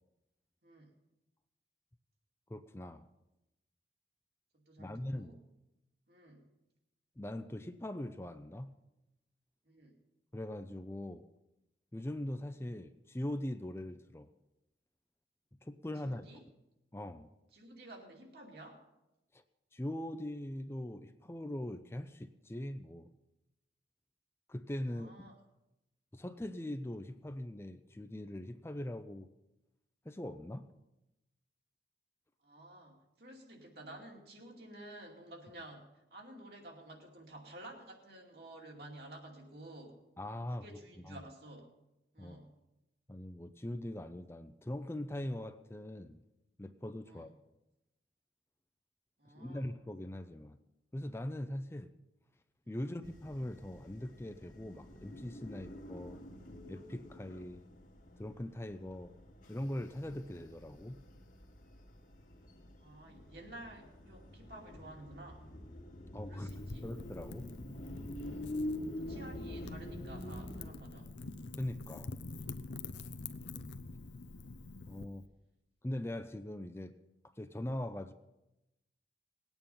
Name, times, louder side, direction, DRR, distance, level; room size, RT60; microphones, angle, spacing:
voice 1, 2.5-3.1 4.8-5.4 7.2-8.8 10.3-11.3 11.9-14.3 15.6-16.3 16.9-17.3 19.3-19.4 19.7-23.1 24.5-25.1 26.1-29.3 30.0-30.7 40.2-40.8 41.0-41.2 42.2-42.4 43.1-46.2 46.6-47.3 49.3-50.6 50.9-51.9 52.7-56.2 56.7-57.6 58.2-59.2 59.5-61.0 66.1-66.5 66.8-67.5 71.6-72.1 74.9-75.3 75.8-76.9 77.4-78.1, left 1 dB, 15° left, 9 dB, 0.5 m, -41 dB
voice 2, 4.5-5.4 6.1-6.4 9.6-9.9 16.0-16.4 17.5-18.9 24.8-25.3 32.4-40.0 40.6-41.7 42.1-42.6 47.0-47.3 49.2-49.7 52.6-52.9 62.8-65.5 66.3-66.9 68.1-68.6 69.0-71.1, right 1 dB, 60° right, 0 dB, 2.6 m, -52 dB
sound 1, 53.0-70.7, left 1 dB, 45° left, 1.4 m, -46 dB
Wind / Fire, 66.5-75.1, left 3 dB, 85° left, 0.7 m, -46 dB
19.0 x 9.0 x 5.5 m, 0.93 s
head